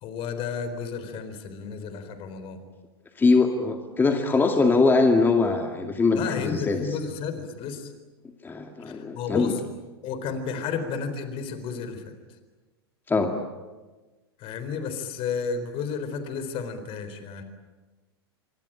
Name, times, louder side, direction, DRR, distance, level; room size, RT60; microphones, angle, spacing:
voice 1, 0.0-2.6 6.1-7.9 8.9-9.5 10.0-12.0 14.4-17.4, left 6 dB, 45° left, 9 dB, 4.1 m, -32 dB
voice 2, 3.2-7.0 8.4-9.6 13.1-13.3, left 3 dB, 15° left, 4 dB, 2.3 m, -22 dB
26.0 x 25.0 x 9.0 m, 1.2 s
hypercardioid pair, 105°, 14 cm